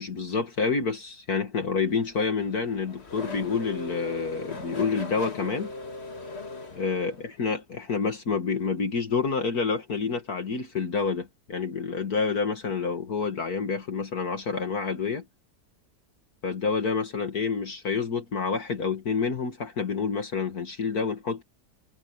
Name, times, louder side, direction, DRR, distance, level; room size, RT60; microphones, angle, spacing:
voice 1, 0.0-5.7 6.7-15.3 16.4-21.4, left 5 dB, 60° left, 2.3 m, -28 dB
Race car auto racing / Accelerating revving vroom, 1.9-7.5, left 3 dB, 40° left, 2.1 m, -39 dB
omnidirectional pair, 1.8 m